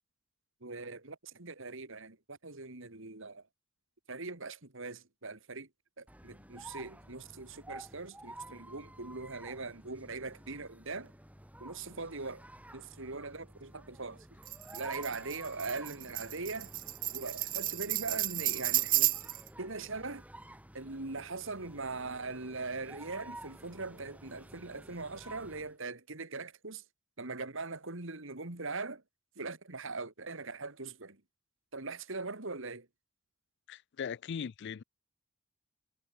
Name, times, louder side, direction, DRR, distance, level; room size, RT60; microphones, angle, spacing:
voice 1, 0.6-3.4 4.1-5.7 6.0-11.1 11.6-12.4 12.7-14.3 14.7-16.7 17.1-19.2 19.6-20.2 20.7-26.8 27.2-29.0 29.4-31.2 31.7-32.9, right 3 dB, 65° right, 2.5 m, -41 dB
sound 1, 6.1-25.7, right 1 dB, 5° right, 7.1 m, -52 dB
Tambourine, 14.5-19.5, right 16 dB, 40° right, 0.5 m, -32 dB
voice 2, 33.7-34.8, left 7 dB, 55° left, 0.4 m, -39 dB
head